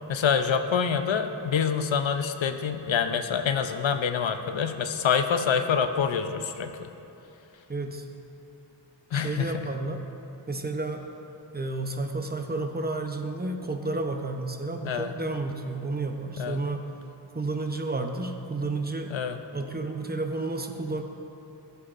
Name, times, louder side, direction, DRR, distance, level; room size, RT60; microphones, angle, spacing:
voice 1, 0.1-6.9 9.1-9.7 14.8-15.1 16.4-16.6 19.1-19.4, left 7 dB, 85° left, 8 dB, 0.6 m, -26 dB
voice 2, 7.7-8.1 9.1-10.0 10.5-11.0 11.5-17.0 17.3-19.1 19.5-21.0, right 2 dB, 20° right, 4 dB, 0.7 m, -31 dB
15.5 x 7.0 x 2.5 m, 2.8 s
wide cardioid pair, 75°, 44 cm